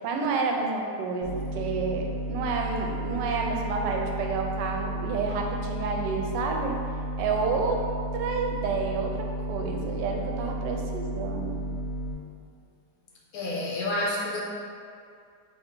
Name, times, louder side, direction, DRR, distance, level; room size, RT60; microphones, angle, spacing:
voice 1, 0.0-6.8 7.2-7.8 8.1-11.7, right 4 dB, 80° right, 1 dB, 1.2 m, -29 dB
sound 1, 1.2-12.1, right 1 dB, 45° right, 1.2 m, -33 dB
voice 2, 13.3-14.4, left 1 dB, 70° left, -3 dB, 1.0 m, -29 dB
3.8 x 2.7 x 4.4 m, 2.3 s
omnidirectional pair, 1.9 m